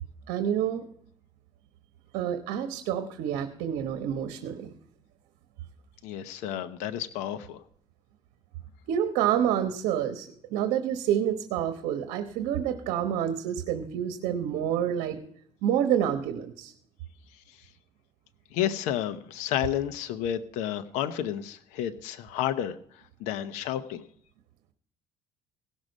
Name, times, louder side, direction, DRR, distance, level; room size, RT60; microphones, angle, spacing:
voice 1, 0.3-0.8 2.1-4.7 8.9-15.2 15.6-16.7, right 9 dB, 80° right, 8 dB, 1.1 m, -28 dB
voice 2, 6.0-7.6 17.3-17.7 18.5-24.0, left 11 dB, 85° left, 10 dB, 0.7 m, -31 dB
17.0 x 6.4 x 5.3 m, 0.66 s
cardioid pair, 115°, 12 cm